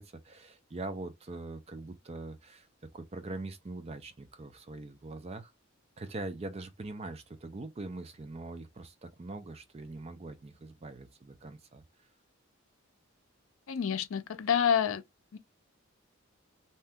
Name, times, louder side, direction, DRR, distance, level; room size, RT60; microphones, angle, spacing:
voice 1, 0.0-2.7 2.9-5.5 6.0-11.8, right 2 dB, 30° right, 0.4 m, -42 dB
voice 2, 13.7-15.0 15.3-15.4, left 8 dB, 80° left, 0.4 m, -28 dB
2.7 x 2.2 x 3.5 m
head